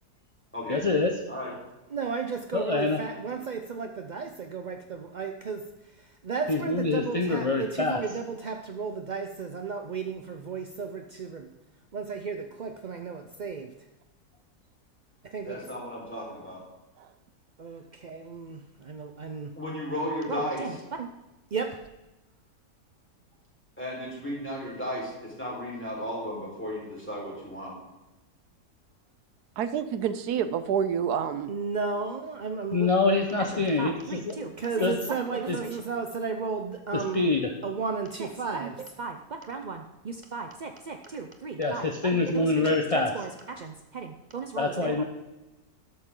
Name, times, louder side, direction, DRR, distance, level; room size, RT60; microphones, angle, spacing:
voice 1, 0.7-1.2 2.5-3.0 6.5-8.0 32.7-33.9 34.3-34.4 34.8-35.0 36.9-37.4 41.6-43.1 44.6-45.0, left 3 dB, 25° left, 3 dB, 0.8 m, -25 dB
voice 2, 1.9-11.5 11.9-13.7 15.2-15.6 17.6-19.5 20.3-21.1 21.5-21.8 31.5-33.0 33.5-37.3 37.6-45.0, right 5 dB, 50° right, 5 dB, 0.5 m, -34 dB
voice 3, 15.4-16.6 19.6-20.6 23.8-27.7, equal, 5° left, -4 dB, 4.4 m, -34 dB
voice 4, 29.6-31.5, right 8 dB, 80° right, 11 dB, 1.2 m, -28 dB
13.0 x 12.0 x 3.8 m, 1.0 s
omnidirectional pair, 1.7 m